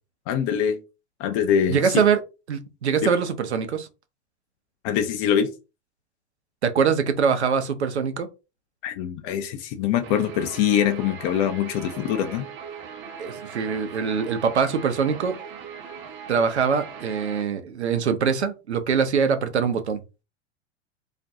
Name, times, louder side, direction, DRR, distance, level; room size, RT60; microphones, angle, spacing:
voice 1, 0.3-0.8 1.2-2.0 3.0-3.1 4.8-5.5 8.8-12.5, left 9 dB, 40° left, 0.4 m, -23 dB
voice 2, 1.7-2.2 2.5-3.9 6.6-8.3 13.2-15.4 16.3-20.0, right 6 dB, 85° right, 0.5 m, -23 dB
Guitar, 10.0-17.4, right 7 dB, 35° right, 0.7 m, -39 dB
2.4 x 2.2 x 2.6 m
figure-of-eight pair, 85°, 33 cm